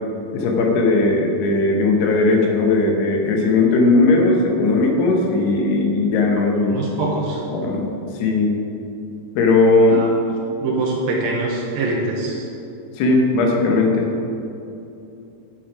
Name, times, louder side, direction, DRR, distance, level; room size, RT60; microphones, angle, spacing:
voice 1, 0.3-6.8 7.5-8.5 9.4-10.0 12.9-14.1, left 3 dB, 80° left, 1 dB, 3.2 m, -17 dB
voice 2, 6.7-7.4 9.9-10.1 10.6-12.4, right 2 dB, 75° right, -2 dB, 2.5 m, -24 dB
9.9 x 7.4 x 4.9 m, 2.7 s
omnidirectional pair, 4.8 m